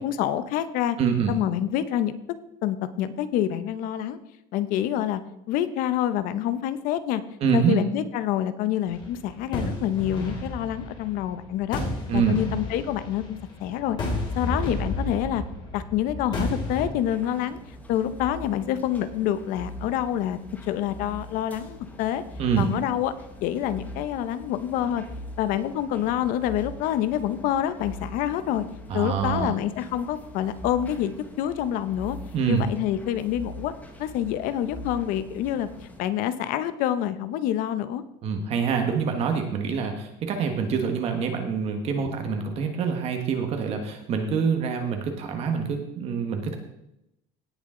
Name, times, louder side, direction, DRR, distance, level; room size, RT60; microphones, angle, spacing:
voice 1, 0.0-1.0 1.3-2.1 2.6-4.2 4.5-5.2 5.5-7.2 7.5-11.8 12.1-14.0 14.3-15.4 15.7-17.6 17.9-22.2 22.6-23.1 23.4-25.0 25.4-28.6 28.9-32.2 32.5-33.7 34.0-35.7 36.0-38.0, left 11 dB, 55° left, 12 dB, 0.9 m, -27 dB
voice 2, 1.0-1.3 7.4-7.8 12.1-12.4 22.4-22.7 28.9-29.5 32.3-32.7 38.2-46.6, right 6 dB, 40° right, 5 dB, 1.4 m, -25 dB
sound 1, 8.9-16.8, left 2 dB, 25° left, 3.2 m, -32 dB
sound 2, 16.9-36.0, equal, 10° left, 1.1 m, -42 dB
17.5 x 6.9 x 3.8 m, 0.82 s
cardioid pair, 180°, 17 cm